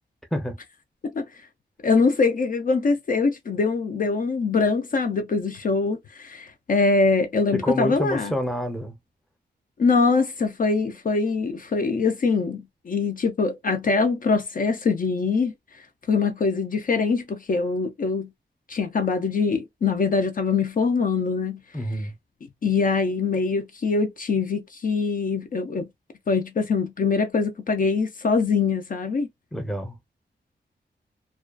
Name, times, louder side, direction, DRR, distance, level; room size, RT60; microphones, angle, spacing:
voice 1, 1.8-8.3 9.8-15.5 16.1-18.3 18.7-21.6 22.6-25.9 26.3-29.3, left 4 dB, 50° left, 0.5 m, -23 dB
voice 2, 7.5-9.0 21.7-22.1 29.5-30.0, equal, ahead, 0.6 m, -28 dB
2.3 x 2.3 x 2.3 m
wide cardioid pair, 140°, 18 cm